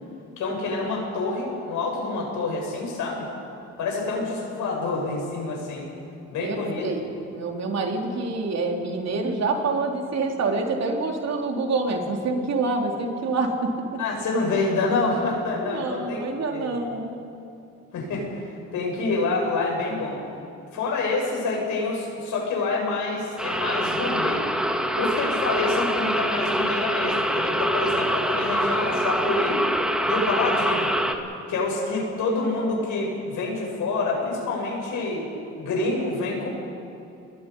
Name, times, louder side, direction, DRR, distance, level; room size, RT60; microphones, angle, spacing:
voice 1, 0.4-3.3 3.8-5.9 6.3-6.9 14.0-16.2 16.5-16.7 17.9-18.4 18.7-20.2 20.7-24.4 25.0-29.6 30.1-30.9 31.5-35.3 35.6-36.5, left 3 dB, 80° left, -1 dB, 7.4 m, -27 dB
voice 2, 6.4-7.0 7.3-13.9 15.6-17.1, right 3 dB, 60° right, 1 dB, 3.5 m, -26 dB
sound 1, 23.4-31.1, equal, 5° right, 1.9 m, -25 dB
29.5 x 20.5 x 5.5 m, 2.7 s
cardioid pair, 90°, 30 cm